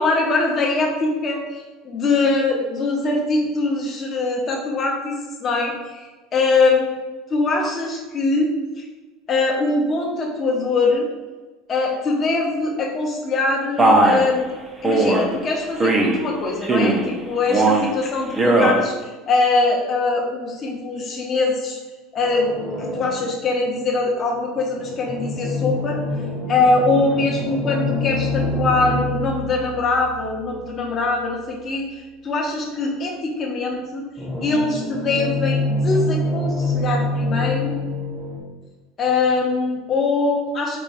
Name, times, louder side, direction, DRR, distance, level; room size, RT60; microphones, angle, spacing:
voice 1, 0.0-1.4 1.8-5.1 5.4-6.8 7.3-8.5 8.8-8.9 9.3-11.1 11.7-14.5 14.8-21.8 22.1-22.5 22.8-26.0 26.5-34.0 34.4-37.7 39.0-40.8, left 3 dB, 30° left, -1 dB, 0.8 m, -22 dB
Male speech man speaking, 13.8-14.3 14.8-15.2 15.8-16.2 16.6-17.1 17.5-17.9 18.3-18.8, right 2 dB, 15° right, 0.5 m, -17 dB
sound 1, 22.2-23.4 24.6-30.7 34.2-38.4, left 2 dB, ahead, 0.9 m, -26 dB
4.6 x 2.2 x 4.1 m, 1.3 s
cardioid pair, 155°, 0 cm